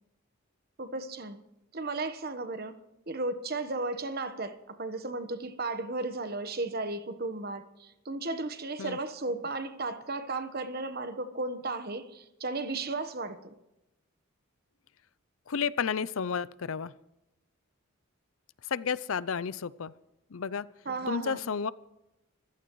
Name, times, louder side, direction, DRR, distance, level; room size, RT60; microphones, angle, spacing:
voice 1, 0.8-1.4 1.7-2.8 3.1-13.5 20.8-21.4, right 3 dB, 45° right, 9 dB, 1.2 m, -35 dB
voice 2, 15.5-16.9 18.7-19.9 20.3-20.7 21.1-21.7, left 6 dB, 70° left, 18 dB, 0.5 m, -31 dB
26.5 x 15.0 x 3.1 m, 0.93 s
head